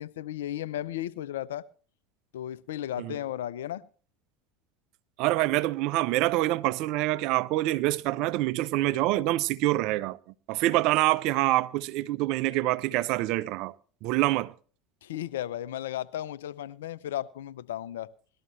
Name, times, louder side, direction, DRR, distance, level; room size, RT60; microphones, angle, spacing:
voice 1, 0.0-1.7 2.3-3.9 15.0-18.1, left 12 dB, 75° left, 0.5 m, -35 dB
voice 2, 5.2-10.2 10.5-13.7 14.0-14.5, right 17 dB, 60° right, 0.5 m, -26 dB
19.0 x 12.5 x 3.2 m
hypercardioid pair, 80°, 0 cm